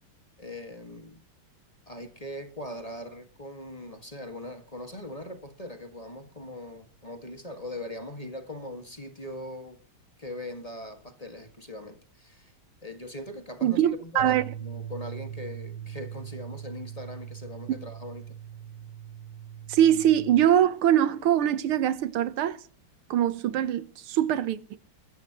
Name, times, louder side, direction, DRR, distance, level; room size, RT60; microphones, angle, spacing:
voice 1, 0.4-1.2 1.9-9.8 10.2-12.5 12.8-18.4, left 1 dB, 20° left, 1.8 m, -40 dB
voice 2, 13.6-14.4 19.7-22.6 23.1-24.8, right 11 dB, 80° right, 1.9 m, -23 dB
sound 1, 14.2-20.4, right 9 dB, 50° right, 0.9 m, -41 dB
22.0 x 14.0 x 3.1 m
omnidirectional pair, 2.3 m